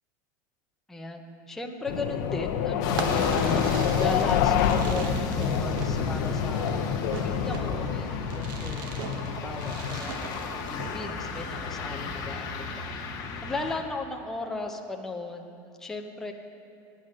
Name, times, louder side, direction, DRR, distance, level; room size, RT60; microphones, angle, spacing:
voice 1, 0.9-8.9 9.1-16.3, left 2 dB, 5° left, 3 dB, 0.5 m, -37 dB
sound 1, 1.9-10.0, left 8 dB, 70° left, 0.5 m, -28 dB
sound 2, 2.8-13.8, left 4 dB, 35° left, 0.9 m, -34 dB
Fireworks, 2.9-11.3, right 5 dB, 85° right, 0.9 m, -39 dB
8.8 x 7.8 x 6.4 m, 2.6 s
supercardioid pair, 170°, 11 cm